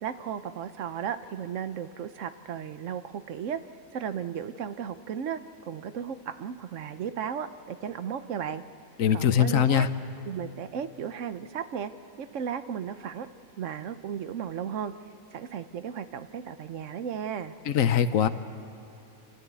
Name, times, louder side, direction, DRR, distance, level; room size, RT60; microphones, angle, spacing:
voice 1, 0.0-3.6 3.9-5.4 5.7-8.6 9.1-9.9 10.3-11.9 12.2-13.3 13.6-14.9 15.3-17.5, right 8 dB, 65° right, 11 dB, 1.1 m, -35 dB
voice 2, 9.0-9.9 17.6-18.3, left 8 dB, 75° left, 12 dB, 1.2 m, -22 dB
28.5 x 13.0 x 8.3 m, 2.9 s
omnidirectional pair, 1.4 m